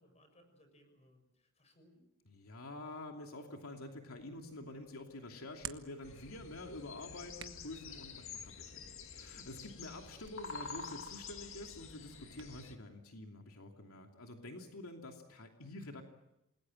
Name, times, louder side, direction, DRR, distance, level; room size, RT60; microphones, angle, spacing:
voice 1, 0.0-2.1, equal, 30° left, 7 dB, 6.2 m, -66 dB
voice 2, 2.4-16.0, left 2 dB, 80° left, 2 dB, 2.8 m, -48 dB
Hands, 4.2-12.6, right 9 dB, 60° right, 1.3 m, -56 dB
sound 1, 6.0-12.8, left 5 dB, 65° left, 2.2 m, -48 dB
28.5 x 21.0 x 7.7 m, 0.90 s
head